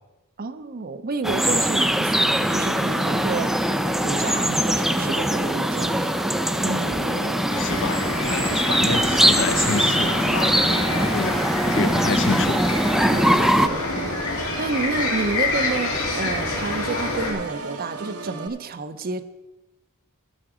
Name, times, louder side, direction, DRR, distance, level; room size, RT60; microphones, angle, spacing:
voice 1, 0.4-3.5 4.0-6.0 6.6-7.0 11.8-12.1 13.1-19.2, right 3 dB, 45° right, 11 dB, 0.6 m, -30 dB
sound 1, 1.2-13.7, equal, ahead, 0.3 m, -22 dB
Organ, 2.5-18.5, right 3 dB, 75° right, 1.1 m, -35 dB
voice 2, 7.0-10.6 10.9-11.4 11.6-12.6, left 4 dB, 60° left, 12 dB, 0.6 m, -29 dB
sound 2, 7.5-17.3, left 3 dB, 85° left, 2.9 m, -28 dB
15.0 x 7.2 x 4.9 m, 1.1 s
head